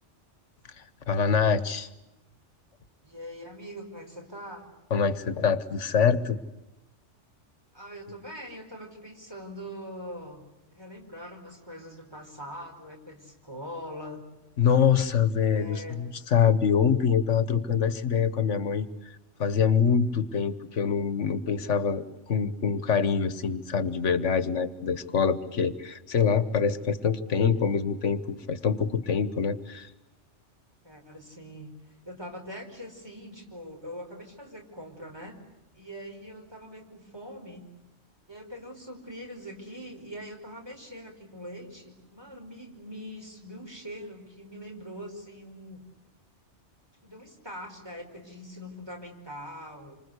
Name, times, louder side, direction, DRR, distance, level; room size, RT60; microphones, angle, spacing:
voice 1, 1.1-1.9 4.9-6.4 14.6-18.9 19.4-29.9, left 6 dB, 85° left, 13 dB, 1.6 m, -25 dB
voice 2, 3.0-4.7 7.7-10.4 10.7-14.2 15.5-16.0 30.8-31.7 32.1-35.4 35.7-37.6 38.3-45.8 47.0-50.0, equal, 20° right, 1 dB, 5.2 m, -42 dB
27.5 x 25.5 x 8.3 m, 0.96 s
omnidirectional pair, 1.2 m